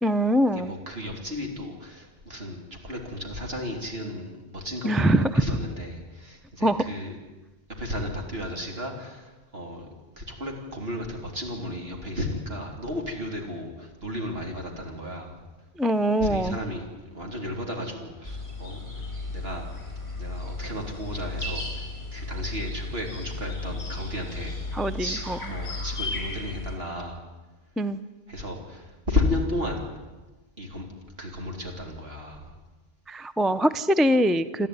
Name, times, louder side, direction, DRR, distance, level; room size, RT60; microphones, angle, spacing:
voice 1, 0.0-0.7 4.8-5.4 6.6-6.8 15.8-16.6 24.7-25.4 27.8-28.0 33.1-34.7, right 1 dB, ahead, 13 dB, 0.4 m, -23 dB
voice 2, 0.5-7.2 7.8-9.9 10.2-15.4 16.2-16.8 17.1-19.0 19.3-19.7 20.2-21.9 22.1-24.6 25.0-27.2 28.3-29.9 30.6-30.9 31.2-32.5, left 1 dB, 60° right, 1 dB, 3.8 m, -33 dB
sound 1, 18.2-26.8, left 3 dB, 25° left, 5.2 m, -35 dB
28.0 x 12.5 x 9.6 m, 1.2 s
omnidirectional pair, 1.1 m